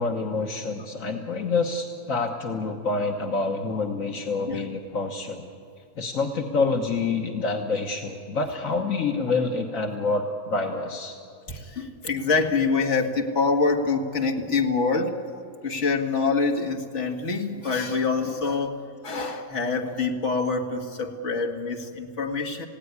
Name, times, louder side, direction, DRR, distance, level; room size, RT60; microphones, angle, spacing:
voice 1, 0.0-5.4 6.0-11.2, left 3 dB, 80° left, 2 dB, 1.8 m, -27 dB
voice 2, 11.5-15.1 15.6-18.8 19.0-22.7, left 4 dB, 60° left, 2 dB, 2.3 m, -25 dB
30.0 x 17.0 x 9.6 m, 2.5 s
omnidirectional pair, 1.4 m